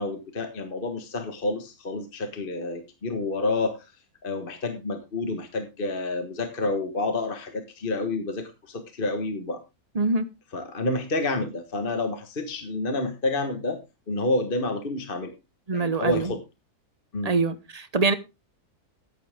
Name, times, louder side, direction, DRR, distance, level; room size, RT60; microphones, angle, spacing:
voice 1, 0.0-3.9 4.2-9.6 10.5-13.8 14.1-15.3 15.7-16.4 17.1-17.4, left 2 dB, 35° left, 1.6 m, -29 dB
voice 2, 9.9-10.3 15.7-16.3 17.2-18.1, right 3 dB, 30° right, 1.0 m, -24 dB
14.0 x 10.0 x 3.6 m
omnidirectional pair, 1.7 m